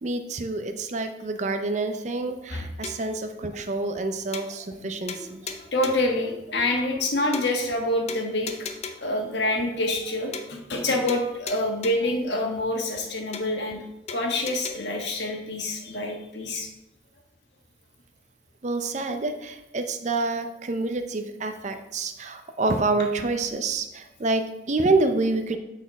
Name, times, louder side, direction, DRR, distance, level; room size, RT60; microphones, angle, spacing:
voice 1, 0.0-5.5 18.6-25.6, right 3 dB, 40° right, 7 dB, 0.5 m, -27 dB
sound 1, 2.8-3.2 3.6-3.7 4.0-4.1 4.3-4.8 5.1-6.1 6.6-6.7 7.0-7.1 7.3-7.8 8.1-9.2 9.6-9.7 10.0-10.1 10.3-10.8 11.1-12.2 12.6-12.7 13.0-13.1 13.3-13.8 14.1-14.7, left 5 dB, 35° left, 0.5 m, -38 dB
voice 2, 5.7-8.5 9.0-13.8 14.1-16.7, left 1 dB, 70° left, 1 dB, 1.3 m, -26 dB
8.2 x 4.1 x 4.1 m, 0.91 s
head